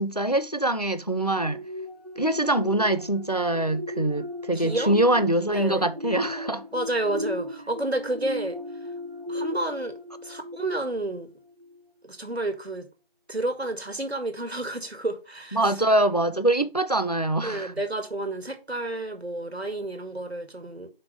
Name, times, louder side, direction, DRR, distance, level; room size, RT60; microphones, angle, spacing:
voice 1, 0.0-1.6 2.2-6.6 15.5-17.7, right 1 dB, 40° left, 0.4 m, -24 dB
sound 1, 1.3-11.1 11.6-11.8, left 1 dB, 40° right, 1.0 m, -36 dB
voice 2, 4.5-4.9 5.5-5.9 6.7-8.6 9.3-9.9 10.2-11.3 12.0-12.9 13.3-15.6 17.4-20.9, right 2 dB, 80° right, 1.7 m, -30 dB
5.3 x 4.0 x 6.0 m
figure-of-eight pair, 170°, 31 cm